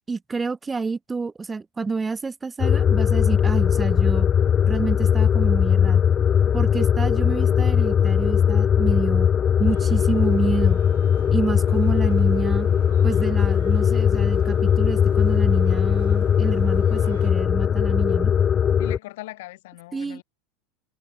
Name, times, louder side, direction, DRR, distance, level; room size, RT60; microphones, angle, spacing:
voice 1, 0.1-4.3 4.7-6.0 6.5-9.3 9.6-10.8 11.3-12.7 13.0-18.3 19.9-20.2, right 4 dB, 15° right, 0.7 m, -28 dB
sound 1, 2.6-19.0, left 8 dB, 30° left, 0.3 m, -19 dB
sound 2, 9.7-17.3, right 12 dB, 90° right, 4.0 m, -46 dB
voice 2, 18.8-20.2, left 19 dB, 75° left, 3.2 m, -39 dB
supercardioid pair, 110°, 0 cm